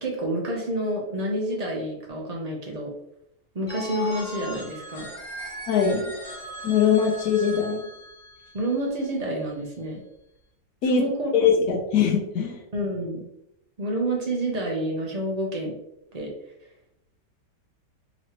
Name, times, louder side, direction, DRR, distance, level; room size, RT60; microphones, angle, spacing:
voice 1, 0.0-2.9 3.5-5.1 8.5-10.0 10.9-11.3 12.7-13.2 13.8-15.7 16.1-16.3, right 1 dB, 60° right, -1 dB, 0.4 m, -28 dB
Telephone, 3.7-9.4, left 1 dB, 40° left, 0.6 m, -38 dB
voice 2, 5.7-6.1 6.6-7.9 10.8-11.0 11.3-12.6, left 7 dB, 65° left, -1 dB, 1.1 m, -22 dB
4.1 x 3.1 x 2.9 m, 0.80 s
omnidirectional pair, 1.9 m